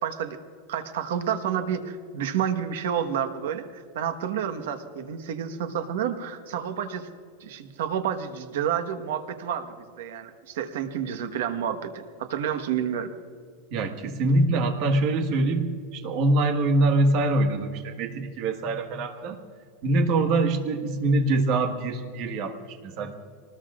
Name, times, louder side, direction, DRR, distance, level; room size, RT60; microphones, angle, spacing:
voice 1, 0.0-0.4 0.7-7.1 7.4-13.1, right 8 dB, 85° right, 8 dB, 1.3 m, -30 dB
voice 2, 13.7-19.4 19.8-23.1, right 2 dB, 40° right, 5 dB, 1.5 m, -24 dB
23.5 x 20.0 x 2.5 m, 2.1 s
supercardioid pair, 170°, 0 cm